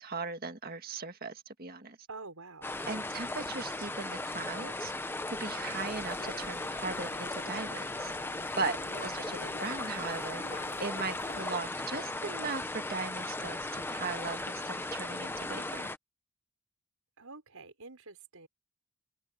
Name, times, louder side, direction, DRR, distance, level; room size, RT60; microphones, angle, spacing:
voice 1, 0.0-2.0 2.9-8.1 8.6-15.9, right 4 dB, 40° right, 1.8 m, -38 dB
voice 2, 2.1-2.7 8.9-9.2 17.2-18.5, right 3 dB, 80° right, 5.2 m, -47 dB
sound 1, 2.6-16.0, left 2 dB, 10° left, 0.8 m, -37 dB
sound 2, 5.8-11.4, left 4 dB, 90° left, 6.7 m, -49 dB
open air
head